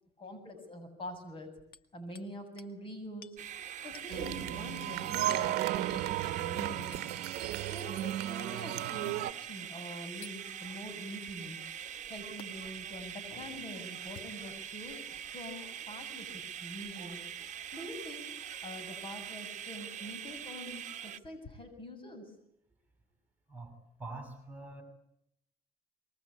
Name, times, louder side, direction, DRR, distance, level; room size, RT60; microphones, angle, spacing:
voice 1, 0.2-1.5 1.9-3.4 3.8-7.1 7.7-11.6 12.1-17.2 17.7-18.2 18.6-22.3, equal, 30° left, 8 dB, 7.6 m, -45 dB
Hammer, 1.7-2.3 2.6-2.8 3.2-3.4 3.9-4.1 5.3-5.6 6.9-7.1 8.6-8.8 10.2-10.4 12.4-12.5 14.0-14.8 15.5-15.7 16.9-17.1 18.0-18.2 19.8-19.9, left 7 dB, 60° left, 2.0 m, -53 dB
sound 1, 3.4-21.2, right 9 dB, 45° right, 1.5 m, -43 dB
sound 2, 4.1-9.3, right 15 dB, 80° right, 1.1 m, -34 dB
voice 2, 24.0-24.8, right 3 dB, 10° right, 5 dB, 6.6 m, -44 dB
26.5 x 23.0 x 8.7 m, 0.74 s
cardioid pair, 110°, 17 cm